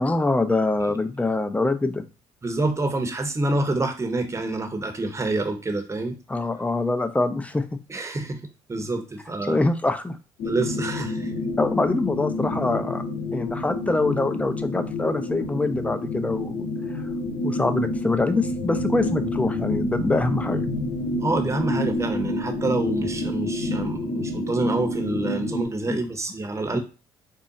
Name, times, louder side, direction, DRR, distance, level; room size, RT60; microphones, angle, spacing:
voice 1, 0.0-2.0 6.3-7.7 9.4-10.2 11.6-13.0 13.3-16.7 16.9-17.1 17.4-20.6 25.9-26.0 26.7-26.8, left 2 dB, 10° left, 9 dB, 0.5 m, -24 dB
voice 2, 2.4-6.2 7.9-8.4 8.7-9.6 10.4-11.4 21.2-26.8, right 2 dB, 25° right, 6 dB, 0.8 m, -27 dB
sound 1, 10.4-25.6, left 2 dB, 80° left, 0.9 m, -28 dB
3.7 x 2.0 x 4.0 m, 0.31 s
supercardioid pair, 65°, 13 cm